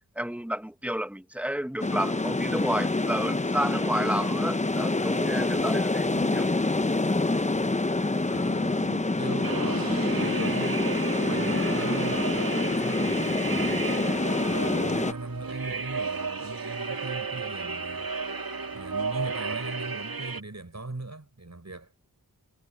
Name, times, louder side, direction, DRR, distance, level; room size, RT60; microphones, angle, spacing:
voice 1, 0.2-6.8, right 1 dB, 5° right, 1.1 m, -31 dB
sound 1, 1.8-15.1, left 2 dB, 20° left, 0.8 m, -26 dB
voice 2, 6.0-6.6 8.2-10.9 11.2-14.0 14.5-18.1 18.7-21.9, right 2 dB, 45° right, 6.9 m, -40 dB
sound 2, 9.4-20.4, right 4 dB, 65° right, 2.1 m, -33 dB
wide cardioid pair, 50°, 37 cm